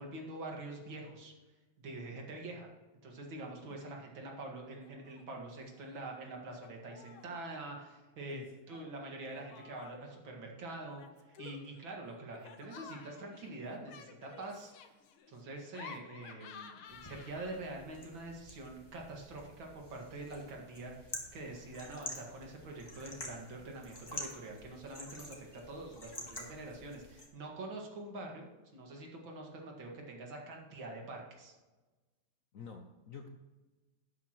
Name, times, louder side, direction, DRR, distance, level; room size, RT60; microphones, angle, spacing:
voice 1, 0.0-1.3 1.8-2.7 3.0-14.7 15.3-28.5 28.7-31.5, right 2 dB, 70° right, 0 dB, 2.6 m, -45 dB
Laughter, 4.8-5.2 5.5-6.1 6.5-7.4 8.7-10.2 10.9-17.8, left 7 dB, 85° left, 1.8 m, -53 dB
sound 1, 16.9-27.3, left 1 dB, 10° left, 1.9 m, -48 dB
voice 2, 32.5-33.4, left 5 dB, 60° left, 4 dB, 0.9 m, -49 dB
12.0 x 9.6 x 3.0 m, 1.2 s
omnidirectional pair, 2.2 m